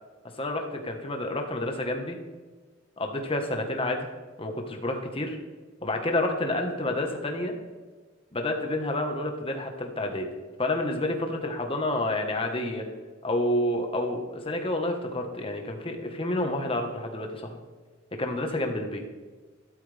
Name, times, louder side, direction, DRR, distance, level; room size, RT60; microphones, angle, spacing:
voice 1, 0.4-2.2 3.0-4.1 4.4-5.4 5.8-7.5 8.3-10.3 10.6-12.8 13.2-17.6 18.2-19.0, left 1 dB, 30° left, 3 dB, 1.5 m, -29 dB
13.0 x 12.0 x 3.6 m, 1.4 s
head